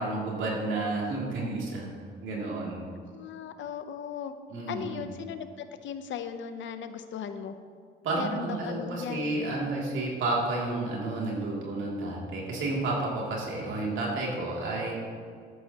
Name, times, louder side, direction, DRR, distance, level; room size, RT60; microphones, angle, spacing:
voice 1, 0.0-1.9 2.2-2.8 4.5-5.0 8.0-15.0, right 2 dB, 75° right, -3 dB, 2.9 m, -31 dB
voice 2, 3.0-4.3 4.7-7.6 8.2-9.6, left 8 dB, 70° left, 9 dB, 0.9 m, -37 dB
13.0 x 9.9 x 3.0 m, 2.2 s
cardioid pair, 90°, 20 cm